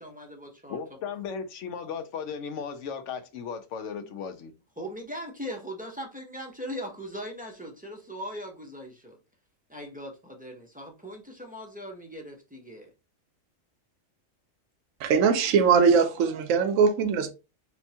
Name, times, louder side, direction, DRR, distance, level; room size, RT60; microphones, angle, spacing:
voice 1, 0.0-0.8 4.0-4.1 4.8-9.2 9.7-12.9, equal, 10° right, 0.5 m, -39 dB
voice 2, 0.7-4.5, left 6 dB, 70° left, 0.9 m, -36 dB
voice 3, 15.0-17.3, right 6 dB, 75° right, 1.0 m, -21 dB
4.3 x 2.2 x 2.7 m
omnidirectional pair, 1.4 m